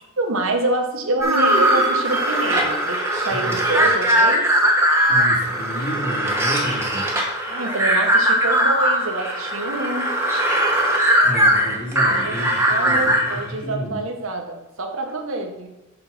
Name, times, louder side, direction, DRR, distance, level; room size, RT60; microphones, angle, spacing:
voice 1, 0.2-4.5 7.4-10.1 12.1-12.3 12.7-15.7, right 2 dB, 65° right, 4 dB, 1.2 m, -26 dB
sound 1, 1.2-13.4, right 1 dB, 10° right, 1.2 m, -19 dB
voice 2, 3.3-3.6 5.1-7.1 11.2-12.6 12.8-14.0, equal, 40° left, -6 dB, 2.4 m, -31 dB
7.0 x 5.7 x 5.4 m, 0.96 s
head